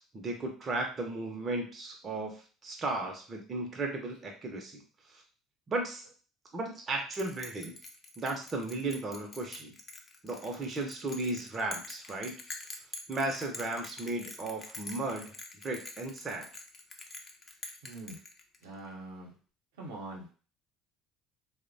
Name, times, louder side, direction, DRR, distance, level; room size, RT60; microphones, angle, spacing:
voice 1, 0.0-4.8 5.1-5.2 5.7-6.0 6.5-7.8 8.2-9.7 10.2-12.4 13.1-15.3 15.6-16.5, right 2 dB, 35° right, 2 dB, 0.6 m, -35 dB
Bell, 7.1-18.8, left 3 dB, 30° left, 0.5 m, -46 dB
voice 2, 17.8-18.2 18.6-19.3 19.8-20.3, right 2 dB, 70° right, -1 dB, 0.8 m, -43 dB
2.9 x 2.1 x 2.6 m, 0.38 s
figure-of-eight pair, 60°, 0 cm